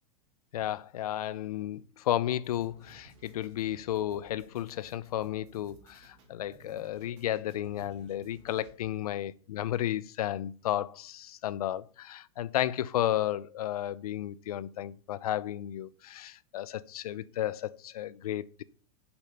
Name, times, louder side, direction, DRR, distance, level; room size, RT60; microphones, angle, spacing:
voice 1, 0.5-18.6, left 12 dB, 80° left, 0.6 m, -33 dB
sound 1, 2.4-9.1, right 3 dB, 45° right, 2.1 m, -58 dB
7.1 x 5.1 x 5.7 m
supercardioid pair, 175°, 19 cm